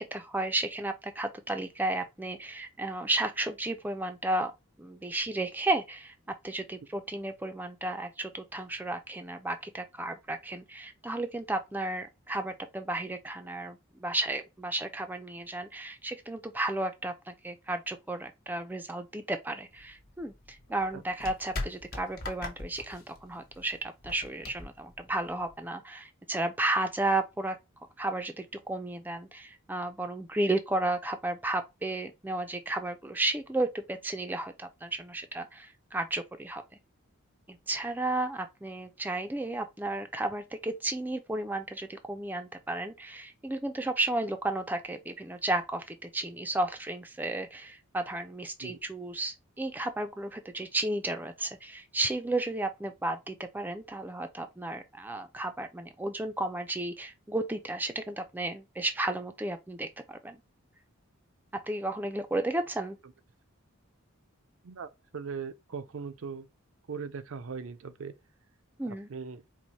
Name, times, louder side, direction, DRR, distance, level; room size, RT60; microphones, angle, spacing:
voice 1, 0.0-4.5 4.8-6.1 6.4-27.6 28.0-36.6 37.5-60.4 61.6-63.0 68.8-69.1, right 2 dB, 10° right, 0.4 m, -33 dB
sound 1, 19.7-25.7, left 2 dB, 45° left, 1.2 m, -41 dB
voice 2, 64.6-66.5 66.9-68.1 68.9-69.4, right 5 dB, 65° right, 0.5 m, -39 dB
4.5 x 2.1 x 4.0 m
head